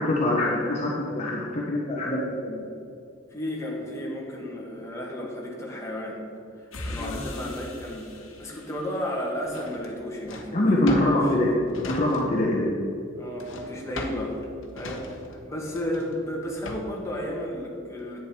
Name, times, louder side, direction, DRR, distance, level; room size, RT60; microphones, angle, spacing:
voice 1, 0.0-2.7 6.8-7.2 10.5-12.7, left 1 dB, 35° left, -4 dB, 1.2 m, -24 dB
voice 2, 3.3-6.2 6.6-11.5 13.2-14.4 14.7-18.2, left 1 dB, 15° left, -3 dB, 1.9 m, -33 dB
sound 1, 6.7-9.4, left 1 dB, 85° left, 1.4 m, -40 dB
Drawer open or close, 9.5-12.6 12.8-17.1, left 2 dB, 70° left, 1.2 m, -40 dB
10.0 x 9.0 x 4.5 m, 2.7 s
head